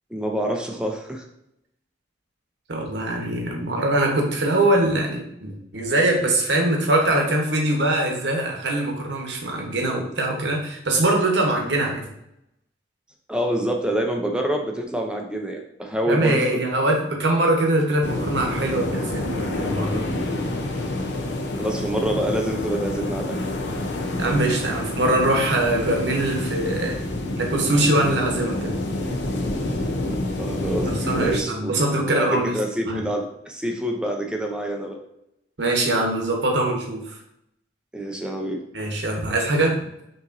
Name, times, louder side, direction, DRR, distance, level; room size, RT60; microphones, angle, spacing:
voice 1, 0.1-1.2 13.3-16.6 21.6-23.4 30.1-35.0 37.9-38.6, right 1 dB, 5° right, 2 dB, 0.4 m, -27 dB
voice 2, 2.7-12.1 16.1-20.0 24.2-27.0 27.4-28.8 30.8-32.6 32.9-33.0 35.6-37.2 38.7-39.8, right 1 dB, 70° right, 1 dB, 0.9 m, -22 dB
sound 1, 18.0-31.4, left 2 dB, 70° left, 0.6 m, -28 dB
5.5 x 2.9 x 2.5 m, 0.83 s
head